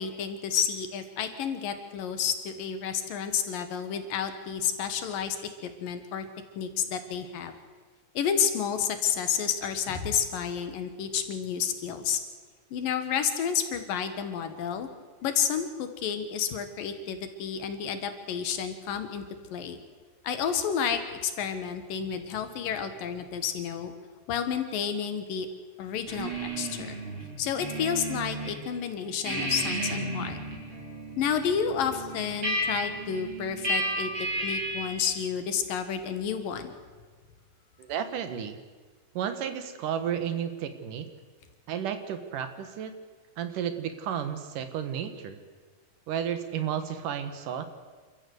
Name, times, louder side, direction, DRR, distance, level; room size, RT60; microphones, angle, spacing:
voice 1, 0.0-5.4 5.6-6.3 6.6-7.6 8.2-12.2 12.7-14.9 15.2-19.2 19.5-19.8 20.2-23.9 24.3-25.5 25.8-27.0 27.4-30.4 31.2-34.1 34.4-36.7, left 7 dB, 85° left, 8 dB, 3.4 m, -30 dB
sound 1, 26.1-28.5 28.9-35.0, right 1 dB, 40° right, 6.2 m, -33 dB
voice 2, 37.8-38.6 39.1-41.1 41.7-42.9 43.4-45.4 46.1-47.6, right 8 dB, 75° right, 10 dB, 3.0 m, -32 dB
27.0 x 14.0 x 8.0 m, 1.4 s
omnidirectional pair, 3.8 m